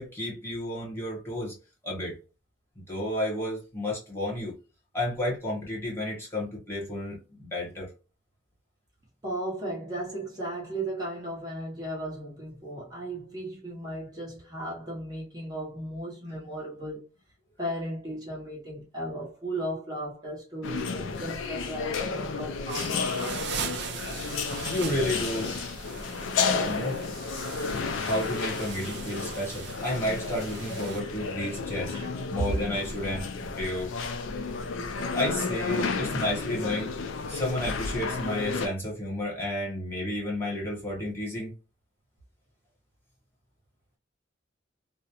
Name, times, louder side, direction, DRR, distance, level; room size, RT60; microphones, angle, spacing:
voice 1, 0.0-1.5 1.8-2.2 2.9-4.5 4.9-7.9 24.6-25.5 26.6-27.0 28.0-31.9 32.3-33.9 35.1-36.9 37.3-41.5, left 1 dB, 15° left, 1.0 m, -31 dB
voice 2, 9.2-17.0 17.6-23.5 31.9-32.1, right 1 dB, 20° right, 0.8 m, -36 dB
sound 1, 20.6-38.7, left 4 dB, 85° left, 0.4 m, -32 dB
sound 2, 22.7-31.0, right 7 dB, 60° right, 0.4 m, -40 dB
2.4 x 2.0 x 2.8 m
head